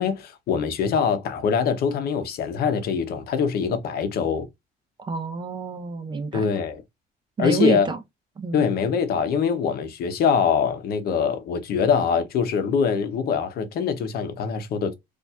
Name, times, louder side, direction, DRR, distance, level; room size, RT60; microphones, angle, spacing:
voice 1, 0.0-4.5 6.3-6.8 7.4-7.9 8.5-14.9, left 6 dB, 65° left, 0.8 m, -23 dB
voice 2, 5.0-6.5 7.4-8.0 8.4-8.6, right 4 dB, 25° right, 0.7 m, -27 dB
4.2 x 2.6 x 2.4 m
cardioid pair, 110°, 17 cm